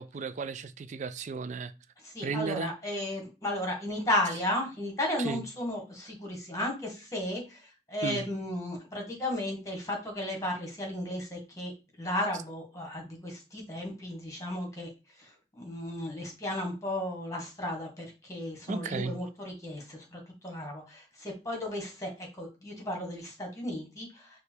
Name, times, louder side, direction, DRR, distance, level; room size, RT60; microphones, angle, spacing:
voice 1, 0.0-1.7 2.2-2.7 5.2-5.4 8.0-8.2 18.7-19.1, right 4 dB, 45° right, 0.4 m, -34 dB
voice 2, 2.0-7.6 7.9-11.7 12.0-14.9 15.5-22.1 22.4-24.1, left 1 dB, 20° left, 1.6 m, -34 dB
5.0 x 2.3 x 4.5 m
head